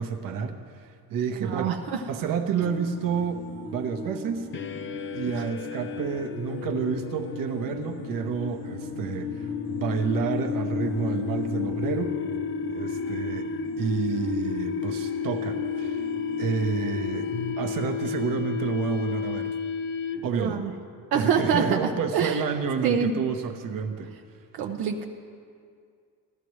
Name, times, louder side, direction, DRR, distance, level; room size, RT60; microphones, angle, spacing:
voice 1, 0.0-1.8 2.1-4.5 5.1-12.2 12.7-13.5 13.8-16.1 16.4-17.3 17.6-19.5 20.2-20.6 21.1-24.1, right 6 dB, 60° right, 5 dB, 1.0 m, -29 dB
voice 2, 1.4-2.0 20.3-20.7 21.1-22.4 22.8-23.1 24.5-25.0, right 6 dB, 85° right, 3 dB, 0.8 m, -26 dB
sound 1, 2.6-17.5, left 3 dB, 60° left, 1.1 m, -38 dB
sound 2, 4.5-20.5, left 6 dB, 35° left, 0.5 m, -32 dB
16.0 x 12.0 x 3.2 m, 2.2 s
cardioid pair, 110°, 37 cm